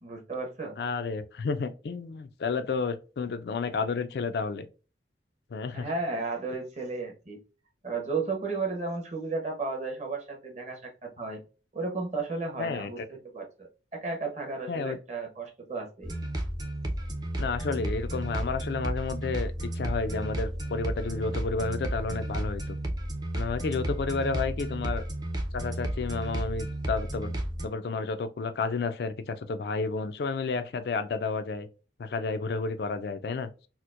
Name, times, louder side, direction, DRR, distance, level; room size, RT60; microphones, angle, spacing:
voice 1, 0.0-0.8 5.7-7.4 7.8-11.4 11.7-16.1, right 3 dB, 40° right, 0.9 m, -34 dB
voice 2, 0.8-4.7 5.5-5.9 12.6-13.1 14.7-15.0 17.4-22.8 23.3-25.0 25.5-27.3 27.6-31.7 32.0-33.5, left 4 dB, 60° left, 0.3 m, -31 dB
sound 1, 16.0-27.7, right 1 dB, 20° right, 0.5 m, -33 dB
4.3 x 2.1 x 2.4 m
head